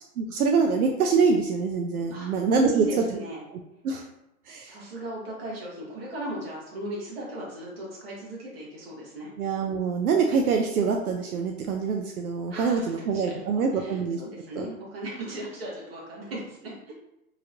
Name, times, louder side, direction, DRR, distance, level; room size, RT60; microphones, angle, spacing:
voice 1, 0.2-2.9 3.8-4.0 4.5-4.7 9.4-14.2 14.6-14.7, right 5 dB, 80° right, 2 dB, 0.5 m, -25 dB
voice 2, 2.7-3.4 4.6-9.3 12.5-13.4 13.7-16.9, right 1 dB, 40° right, -4 dB, 1.1 m, -37 dB
3.0 x 2.7 x 2.5 m, 0.87 s
hypercardioid pair, 160°, 44 cm